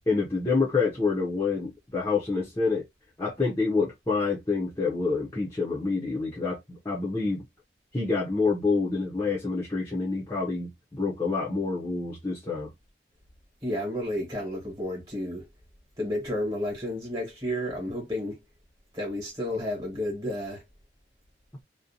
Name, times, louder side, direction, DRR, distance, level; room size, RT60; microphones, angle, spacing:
voice 1, 0.1-2.8 3.2-7.4 7.9-12.7, left 4 dB, 15° left, 0.5 m, -27 dB
voice 2, 13.6-15.5 16.0-18.4 18.9-20.6, left 1 dB, 25° right, 1.1 m, -31 dB
2.5 x 2.1 x 2.6 m
head